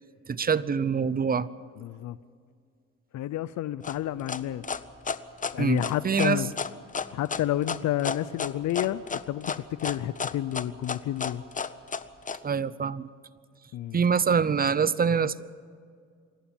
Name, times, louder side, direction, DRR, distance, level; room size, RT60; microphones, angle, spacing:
voice 1, 0.3-1.5 5.6-6.4 12.4-13.1 13.9-15.4, right 6 dB, 30° right, 18 dB, 0.7 m, -25 dB
voice 2, 1.8-2.2 3.1-4.6 5.5-6.5 7.1-9.5 9.8-11.4 13.7-14.0, left 12 dB, 70° left, 16 dB, 0.6 m, -30 dB
sound 1, 3.8-12.4, left 5 dB, 25° left, 0.8 m, -32 dB
27.0 x 11.5 x 9.0 m, 2.1 s
cardioid pair, 90°, 30 cm